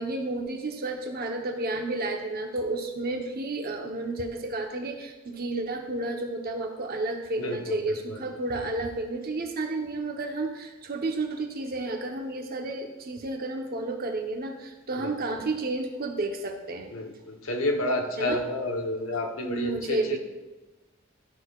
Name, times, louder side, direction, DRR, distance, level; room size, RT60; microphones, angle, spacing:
voice 1, 0.0-16.9 18.2-18.4 19.4-20.2, right 2 dB, 45° right, 3 dB, 0.9 m, -31 dB
voice 2, 7.4-8.2 15.0-15.4 16.9-20.2, left 1 dB, 80° left, 3 dB, 1.0 m, -30 dB
12.0 x 6.2 x 2.4 m, 1.2 s
head